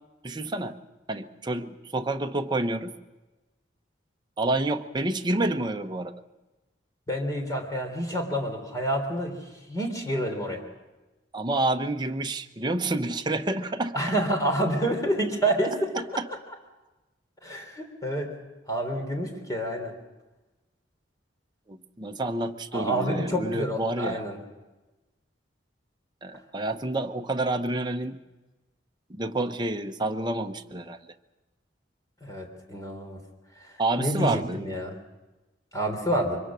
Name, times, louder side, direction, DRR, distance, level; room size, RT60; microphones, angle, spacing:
voice 1, 0.2-0.7 1.1-2.9 4.4-6.1 11.3-14.0 16.2-16.3 21.7-24.2 26.2-28.2 29.1-31.0 33.8-34.6, right 2 dB, 25° right, 5 dB, 0.9 m, -28 dB
voice 2, 7.1-9.3 9.7-10.6 13.9-15.7 17.4-18.3 18.7-19.9 22.7-24.4 32.2-33.2 33.6-33.7 34.0-34.9 35.7-36.4, right 1 dB, 20° left, 3 dB, 3.4 m, -28 dB
24.0 x 22.5 x 6.3 m, 1.1 s
head